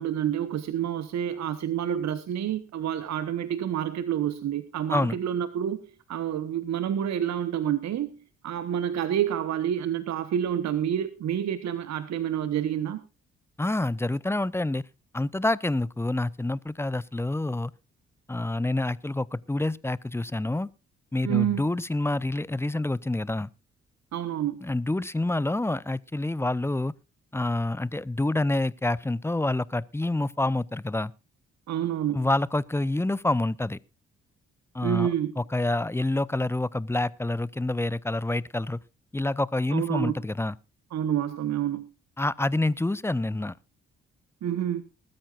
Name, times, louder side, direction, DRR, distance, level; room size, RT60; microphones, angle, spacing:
voice 1, 0.0-8.2 8.4-13.0 21.2-21.7 24.1-24.6 31.7-32.2 34.8-35.3 39.7-40.1 40.9-41.8 44.4-44.8, right 10 dB, 55° right, 1.1 m, -28 dB
voice 2, 13.6-14.8 15.1-17.7 18.3-20.7 21.1-23.5 24.6-26.9 27.3-31.1 32.1-33.8 34.7-38.8 39.1-40.5 42.2-43.5, left 2 dB, 10° left, 0.6 m, -27 dB
20.5 x 13.0 x 2.4 m
hypercardioid pair, 40°, 32 cm